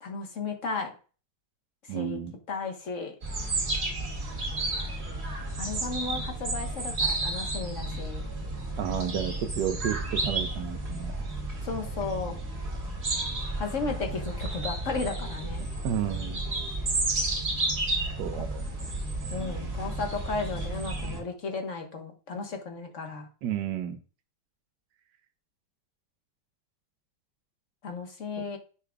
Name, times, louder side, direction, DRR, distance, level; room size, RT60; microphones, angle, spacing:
voice 1, 0.0-0.9 1.8-2.2 2.5-3.1 5.6-8.3 11.6-12.4 13.6-15.6 18.3-18.5 19.3-23.3 27.8-28.6, left 4 dB, 50° left, 4 dB, 1.5 m, -34 dB
voice 2, 1.9-2.3 8.7-11.3 15.8-16.4 18.2-18.9 23.4-24.0 28.4-28.5, right 9 dB, 80° right, 7 dB, 1.4 m, -32 dB
sound 1, 3.2-21.2, right 2 dB, 40° right, 2.0 m, -32 dB
10.0 x 6.0 x 2.3 m, 0.36 s
omnidirectional pair, 1.8 m